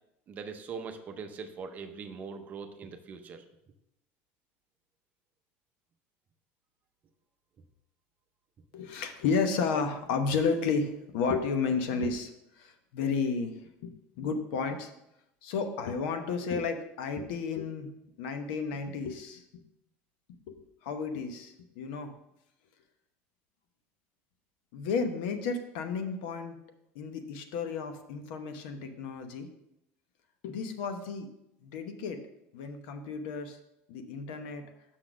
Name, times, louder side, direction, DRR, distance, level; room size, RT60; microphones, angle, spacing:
voice 1, 0.3-3.4, right 5 dB, 30° right, 7 dB, 0.6 m, -41 dB
voice 2, 8.7-12.3 12.6-13.5 13.8-14.9 15.4-17.9 18.2-19.4 20.5-22.1 24.7-26.6 26.9-29.5 30.4-31.3 31.6-32.2 32.5-33.6 33.9-34.7, left 5 dB, 85° left, 7 dB, 0.9 m, -32 dB
6.3 x 4.0 x 6.1 m, 0.85 s
cardioid pair, 155°, 5 cm